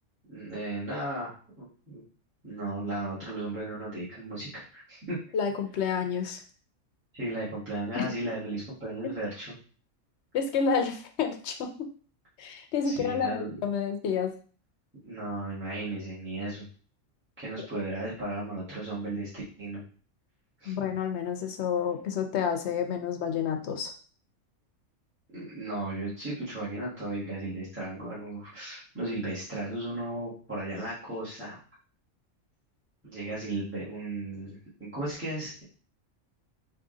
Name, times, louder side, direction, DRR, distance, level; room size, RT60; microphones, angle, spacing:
voice 1, 0.3-2.0 2.4-5.2 7.1-9.5 12.8-13.6 15.0-16.6 17.4-19.8 20.6-20.9 25.3-31.6 33.0-35.6, right 2 dB, 10° right, -11 dB, 1.6 m, -35 dB
voice 2, 5.3-6.4 8.0-8.1 10.3-11.9 12.4-14.3 17.6-17.7 20.7-23.9, left 6 dB, 65° left, 6 dB, 0.8 m, -29 dB
3.7 x 2.7 x 3.7 m, 0.41 s
omnidirectional pair, 1.3 m